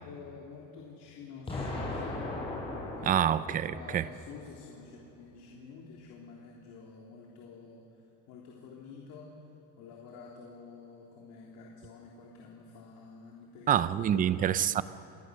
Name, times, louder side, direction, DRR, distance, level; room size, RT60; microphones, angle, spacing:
voice 1, 0.0-2.2 2.9-3.3 3.7-9.4 9.8-14.5, left 5 dB, 60° left, 3.6 m, -49 dB
Explosion, 1.5-4.4, left 2 dB, 15° left, 5.4 m, -38 dB
voice 2, 3.1-4.0 13.7-14.8, right 10 dB, 25° right, 0.4 m, -27 dB
28.5 x 22.0 x 6.6 m
cardioid pair, 170°, 37 cm